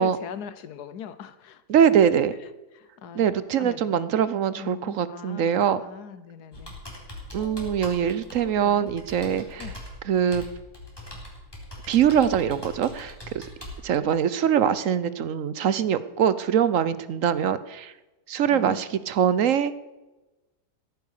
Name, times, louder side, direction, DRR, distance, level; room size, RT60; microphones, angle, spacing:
voice 1, 0.0-2.0 2.4-3.3 3.6-4.1 4.5-6.7 7.4-8.9 9.6-9.8 18.5-18.8, left 7 dB, 70° left, 13 dB, 1.4 m, -41 dB
voice 2, 1.7-2.3 3.2-5.8 7.3-9.6 10.1-10.4 11.9-13.5 13.8-17.9 18.3-19.8, right 8 dB, 60° right, 15 dB, 1.0 m, -23 dB
Computer keyboard, 6.5-13.8, left 1 dB, 15° left, 3.6 m, -41 dB
16.0 x 9.5 x 6.6 m, 1.1 s
omnidirectional pair, 1.8 m